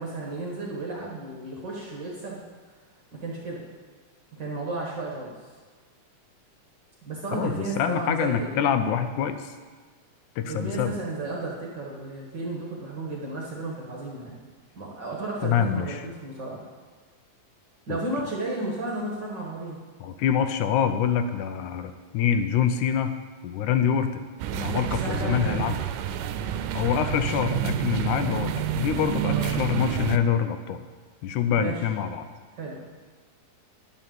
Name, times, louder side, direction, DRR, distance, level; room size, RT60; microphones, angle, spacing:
voice 1, 0.0-2.4 3.1-3.6 4.3-5.3 7.0-8.7 10.5-14.4 14.7-16.6 17.9-19.8 25.0-25.6 29.2-29.8 31.5-31.8 32.6-32.9, right 2 dB, 45° right, -3 dB, 1.5 m, -33 dB
voice 2, 7.3-9.5 10.4-11.0 15.4-16.0 17.9-18.0 20.0-23.1 23.4-24.2 24.5-25.8 26.7-30.8 31.2-32.3, left 8 dB, 75° left, 9 dB, 2.1 m, -25 dB
sound 1, 24.4-30.2, right 10 dB, 90° right, 2.2 m, -29 dB
11.0 x 5.4 x 7.6 m, 1.5 s
omnidirectional pair, 3.7 m